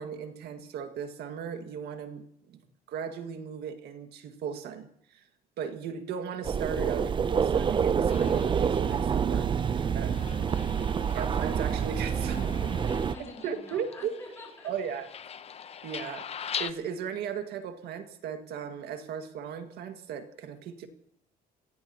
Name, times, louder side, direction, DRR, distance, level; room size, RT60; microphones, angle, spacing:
voice 1, 0.0-2.6 2.9-5.3 5.6-9.6 9.9-10.2 11.1-12.8 13.2-14.1 14.6-15.1 15.8-20.9, right 7 dB, 75° right, 7 dB, 1.8 m, -37 dB
sound 1, 6.4-13.2, right 7 dB, 30° right, 0.5 m, -27 dB
sound 2, 8.1-16.7, left 8 dB, 35° left, 0.7 m, -42 dB
voice 2, 10.2-10.9 12.9-14.7, left 1 dB, 15° left, -2 dB, 4.7 m, -48 dB
28.0 x 16.5 x 2.9 m, 0.65 s
cardioid pair, 110°, 17 cm